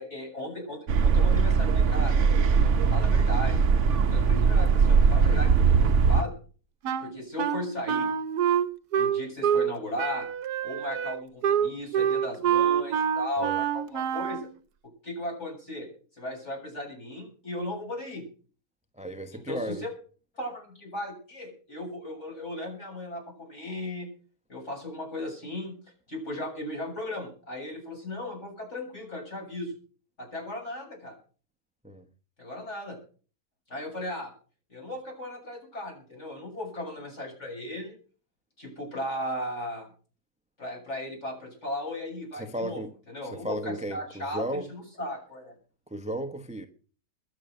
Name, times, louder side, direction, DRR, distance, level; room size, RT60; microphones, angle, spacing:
voice 1, 0.0-2.2 2.5-3.6 3.9-6.3 7.0-8.1 8.9-10.3 10.6-14.5 15.0-15.9 16.1-18.3 19.3-19.9 20.3-24.1 24.5-25.7 26.1-29.7 30.2-31.2 32.4-33.0 33.7-34.3 34.7-37.9 38.6-39.9 40.6-42.8 43.1-45.5, left 1 dB, 45° left, 7.9 m, -36 dB
sound 1, 0.9-6.2, right 5 dB, 55° right, 1.1 m, -21 dB
Wind instrument woodwind instrument, 6.8-9.7 10.0-14.5, right 8 dB, 80° right, 1.4 m, -26 dB
voice 2, 18.9-19.9 31.8-32.1 42.3-42.9 43.3-44.7 45.9-46.7, right 1 dB, 5° right, 0.8 m, -34 dB
22.0 x 7.7 x 6.5 m
omnidirectional pair, 1.7 m